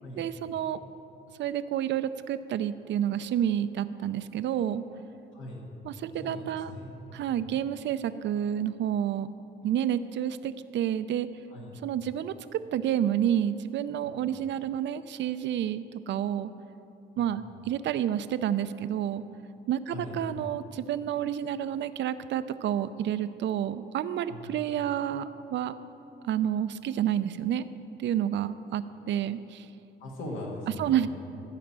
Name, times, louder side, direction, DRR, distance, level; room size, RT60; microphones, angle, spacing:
voice 1, 0.2-0.8 1.4-4.8 5.8-6.7 7.1-9.3 9.6-11.3 11.8-16.5 17.2-19.2 19.7-25.7 26.2-27.7 28.0-29.7 30.8-31.1, right 10 dB, 65° right, 13 dB, 0.5 m, -29 dB
voice 2, 5.3-5.6 6.2-7.2 11.5-11.8 17.2-17.3 19.9-20.4 24.3-24.6 30.0-31.1, left 1 dB, 75° left, -2 dB, 2.0 m, -40 dB
13.5 x 5.1 x 7.4 m, 2.8 s
cardioid pair, 90°, 20 cm